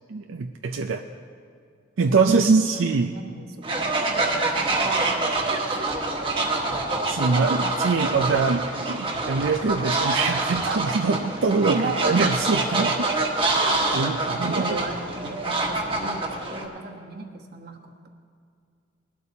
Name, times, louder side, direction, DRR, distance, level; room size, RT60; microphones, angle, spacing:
voice 1, 0.1-1.0 2.0-3.1 7.1-13.1 13.4-13.6 13.9-14.8, right 4 dB, 85° right, 6 dB, 0.5 m, -23 dB
voice 2, 2.1-5.7 11.7-12.2 14.2-18.1, right 3 dB, 50° right, 2 dB, 1.2 m, -37 dB
Fowl, 3.6-16.6, right 2 dB, 25° right, 1.3 m, -26 dB
20.5 x 12.0 x 2.8 m, 2.3 s
head